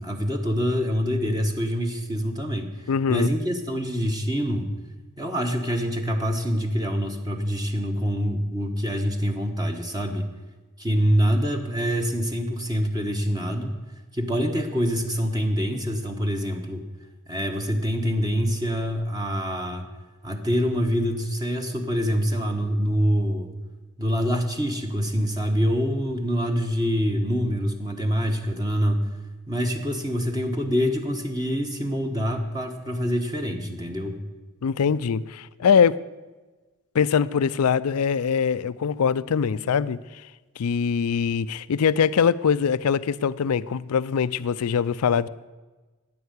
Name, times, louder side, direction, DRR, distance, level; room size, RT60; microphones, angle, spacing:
voice 1, 0.0-4.7 5.2-10.3 10.8-13.7 14.1-16.8 17.3-19.9 20.2-23.5 24.0-29.1 29.5-34.2, equal, 20° right, 1.3 m, -25 dB
voice 2, 2.9-3.3 34.6-36.0 36.9-40.2 40.6-45.3, left 6 dB, 90° left, 0.4 m, -22 dB
14.0 x 9.4 x 8.1 m
head